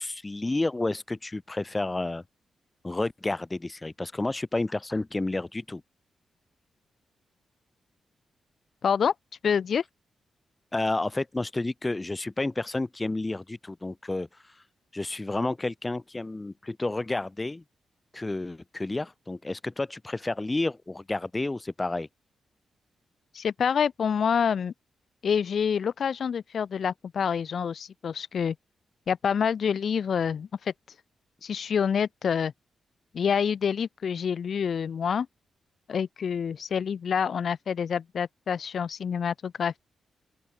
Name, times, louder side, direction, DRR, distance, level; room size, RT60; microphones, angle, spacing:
voice 1, 0.0-2.2 2.8-5.8 10.7-14.3 14.9-17.6 18.1-22.1, left 2 dB, 15° left, 2.9 m, -30 dB
voice 2, 8.8-9.1 9.4-9.8 23.3-24.7 25.2-28.5 29.1-30.7 31.4-32.5 33.1-35.3 35.9-39.8, left 7 dB, 55° left, 0.9 m, -27 dB
open air
wide cardioid pair, 135°, 0 cm